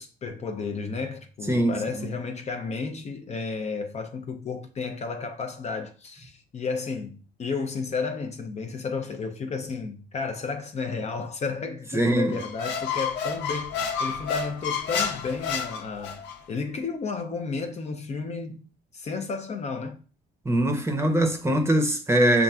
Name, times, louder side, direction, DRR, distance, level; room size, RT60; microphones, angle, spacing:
voice 1, 0.0-18.7 18.9-20.0, left 4 dB, 40° left, 0.5 m, -32 dB
voice 2, 1.5-2.1 11.9-12.4 20.4-22.4, right 1 dB, 15° right, 0.7 m, -22 dB
Squeak, 12.3-16.4, left 6 dB, 85° left, 0.7 m, -30 dB
6.7 x 2.4 x 2.3 m
cardioid pair, 105°, 18 cm